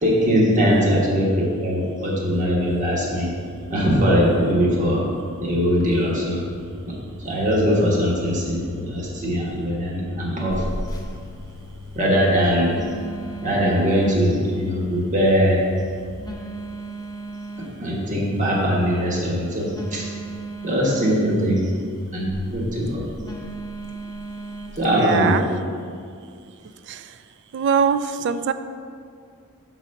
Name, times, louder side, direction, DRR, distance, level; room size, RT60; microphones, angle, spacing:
voice 1, 0.0-3.3 3.7-5.0 5.4-6.4 6.8-6.9 7.2-10.6 11.9-12.7 13.4-15.6 17.8-20.0 20.6-21.7 22.1-23.0 24.8-25.4, equal, 35° right, -4 dB, 1.3 m, -21 dB
sound 1, 2.4-16.3, left 2 dB, 70° left, 0.6 m, -42 dB
Telephone, 10.5-24.9, right 1 dB, 15° left, 0.7 m, -37 dB
voice 2, 24.9-25.4 26.9-27.1 27.5-28.5, right 6 dB, 50° right, 12 dB, 0.3 m, -23 dB
6.2 x 4.1 x 6.4 m, 2.2 s
head